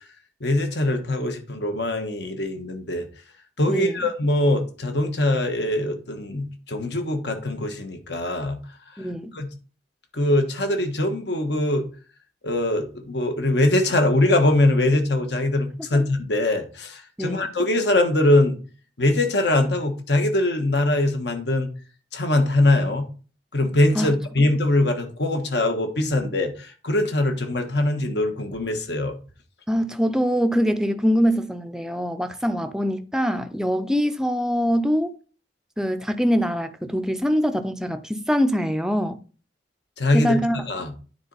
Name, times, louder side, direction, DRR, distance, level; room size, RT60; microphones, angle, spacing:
voice 1, 0.4-3.1 3.6-8.6 9.3-9.5 10.1-11.9 12.4-18.6 19.0-21.7 22.1-23.1 23.5-29.2 40.0-40.4 40.6-40.9, left 1 dB, 65° left, 1.3 m, -22 dB
voice 2, 3.7-4.1 9.0-9.3 15.9-16.0 17.2-17.5 23.9-24.1 29.7-35.2 35.8-39.2 40.1-40.6, equal, 5° right, 0.5 m, -23 dB
9.6 x 4.2 x 4.0 m
head